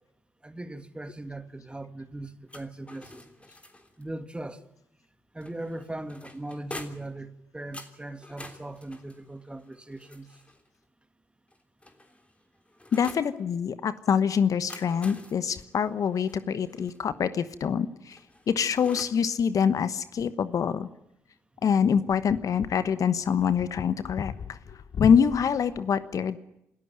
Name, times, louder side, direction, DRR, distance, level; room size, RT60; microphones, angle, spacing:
voice 1, 0.4-3.2 4.0-4.6 5.3-10.3, right 2 dB, 15° right, 2.1 m, -39 dB
sound 1, 2.5-4.1 5.4-7.2 7.7-10.7 11.5-13.3 14.4-17.0 18.1-19.3, left 1 dB, 20° left, 3.4 m, -47 dB
voice 2, 12.9-18.2 18.5-20.9 21.6-24.3 24.9-26.4, left 7 dB, 55° left, 1.1 m, -25 dB
27.5 x 13.5 x 8.9 m
hypercardioid pair, 45°, 7 cm